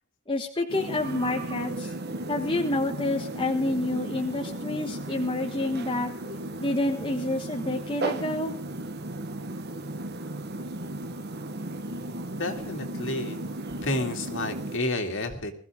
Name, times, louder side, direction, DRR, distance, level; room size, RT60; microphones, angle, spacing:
voice 1, 0.3-1.9 2.3-6.1 6.6-8.5, left 2 dB, 25° left, 2 dB, 1.4 m, -28 dB
sound 1, 0.7-14.8, right 1 dB, 50° right, 1.3 m, -35 dB
voice 2, 12.3-13.5 13.8-15.5, left 2 dB, 60° left, 4 dB, 2.7 m, -30 dB
21.0 x 15.0 x 3.7 m, 0.43 s
head